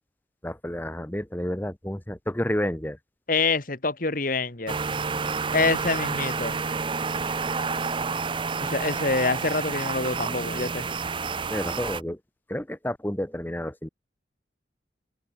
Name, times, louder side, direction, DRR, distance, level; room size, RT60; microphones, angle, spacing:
voice 1, 0.4-3.0 11.5-12.2 12.5-13.9, left 1 dB, 10° left, 1.1 m, -30 dB
voice 2, 3.3-4.7 5.5-6.6 8.6-10.9, left 3 dB, 45° left, 1.9 m, -26 dB
sound 1, 4.7-12.0, right 4 dB, 25° right, 0.5 m, -29 dB
head